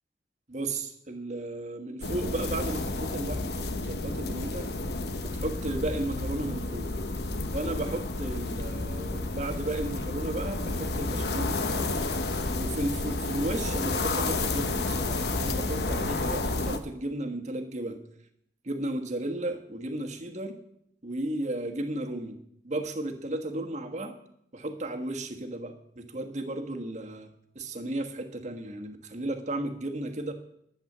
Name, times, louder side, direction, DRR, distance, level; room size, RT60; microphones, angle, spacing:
voice 1, 0.5-4.7 5.2-6.9 7.5-11.9 12.6-18.0 18.6-20.6 21.0-22.4 22.6-24.2 24.5-30.3, right 1 dB, 40° right, 4 dB, 1.4 m, -34 dB
sound 1, 2.0-16.8, left 2 dB, 65° left, 1.0 m, -31 dB
11.5 x 8.0 x 7.3 m, 0.74 s
head